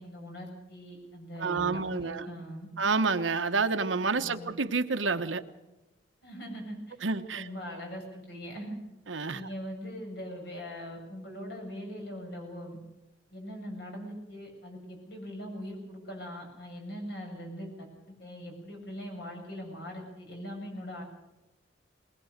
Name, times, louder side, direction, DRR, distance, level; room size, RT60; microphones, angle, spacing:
voice 1, 0.0-2.7 4.2-4.5 6.2-7.0 7.3-8.8 9.3-12.8 13.3-21.0, equal, 60° left, 1 dB, 7.7 m, -41 dB
voice 2, 1.4-2.2 2.8-5.4 7.0-7.5 9.1-9.5, right 4 dB, 85° right, 8 dB, 1.2 m, -29 dB
21.0 x 20.0 x 6.7 m, 0.99 s
head